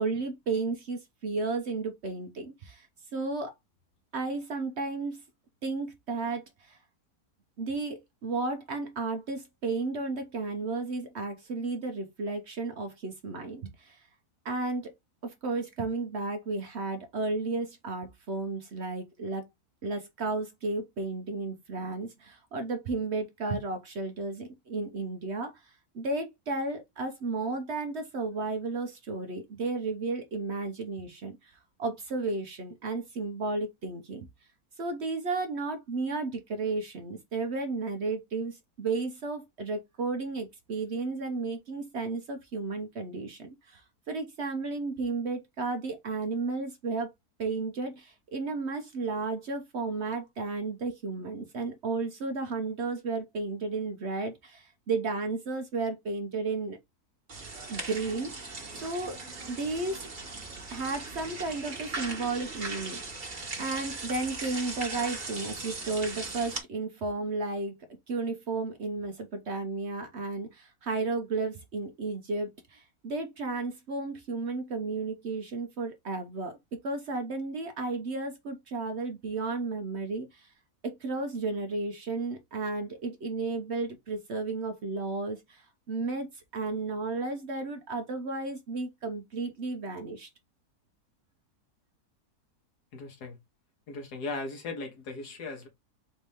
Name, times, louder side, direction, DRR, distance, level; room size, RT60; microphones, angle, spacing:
voice 1, 0.0-2.9 3.1-3.5 4.1-5.2 5.6-6.8 7.6-14.0 14.4-14.9 15.2-19.4 19.8-34.3 34.8-47.1 47.4-56.8 57.7-59.2 59.5-60.1 60.7-63.0 63.6-67.7 68.1-80.5 80.8-90.3, right 3 dB, 55° right, 0.9 m, -33 dB
sound 1, 57.3-66.6, right 3 dB, 35° right, 1.3 m, -39 dB
voice 2, 92.9-93.4 93.9-95.7, left 3 dB, 85° left, 1.9 m, -37 dB
4.3 x 2.8 x 3.4 m
omnidirectional pair, 1.7 m